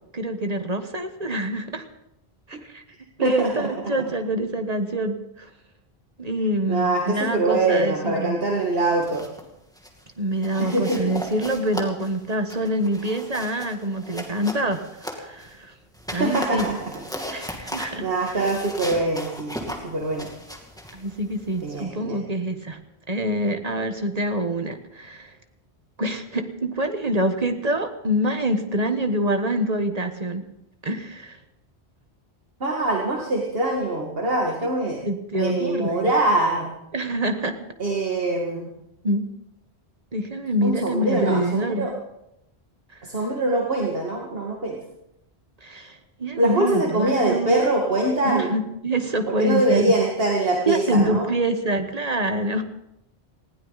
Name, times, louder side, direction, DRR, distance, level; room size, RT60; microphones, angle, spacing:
voice 1, 0.1-1.9 2.5-2.8 3.2-5.5 6.2-8.4 10.2-15.7 16.1-16.7 17.3-18.1 18.3-18.4 20.9-22.8 23.1-25.4 26.0-30.4 30.8-31.4 35.0-36.0 36.9-37.6 39.0-39.3 40.1-41.9 42.9-43.0 45.6-47.6 48.2-49.9 50.6-52.6, right 1 dB, 40° right, 7 dB, 1.4 m, -26 dB
voice 2, 3.2-3.7 6.7-9.2 10.6-11.0 16.2-17.4 18.0-20.3 21.6-22.2 32.6-35.0 35.3-36.8 37.8-38.7 40.6-41.9 43.0-44.8 46.4-48.5 49.3-51.3, right 2 dB, 60° right, -1 dB, 2.3 m, -23 dB
sound 1, 8.8-9.4 9.7-10.0 10.4-15.5 15.9-21.8, equal, 5° left, 2.4 m, -37 dB
20.0 x 16.0 x 4.1 m, 0.83 s
omnidirectional pair, 1.1 m